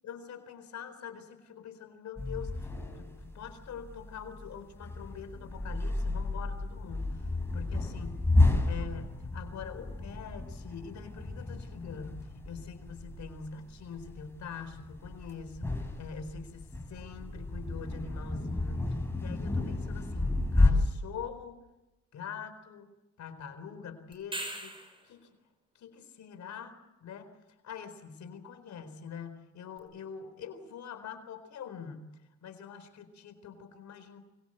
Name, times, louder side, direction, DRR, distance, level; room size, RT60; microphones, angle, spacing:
voice 1, 0.0-8.3 8.7-21.6 22.1-22.9 23.2-25.3 25.7-27.3 27.6-32.1 32.4-34.2, left 6 dB, 65° left, 9 dB, 4.2 m, -44 dB
sound 1, 2.2-20.7, left 2 dB, 10° left, 6.2 m, -32 dB
sound 2, 24.1-25.1 29.8-29.9, right 1 dB, 15° right, 5.8 m, -39 dB
25.0 x 22.5 x 7.8 m, 1.0 s
cardioid pair, 90°, 30 cm